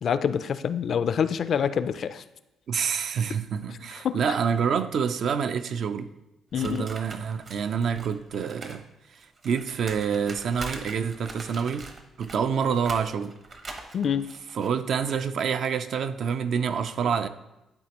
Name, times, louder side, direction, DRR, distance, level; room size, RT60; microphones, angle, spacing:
voice 1, 0.0-2.2 4.0-4.2 6.5-6.9 13.9-14.3, left 7 dB, 60° left, 0.3 m, -26 dB
voice 2, 2.7-6.1 6.6-8.8 9.4-11.9 12.2-13.4 14.5-17.3, right 7 dB, 65° right, 0.4 m, -27 dB
sound 1, 6.6-8.8 9.1-15.2, right 3 dB, 40° right, 0.9 m, -42 dB
11.5 x 4.1 x 3.0 m
cardioid pair, 90°, 0 cm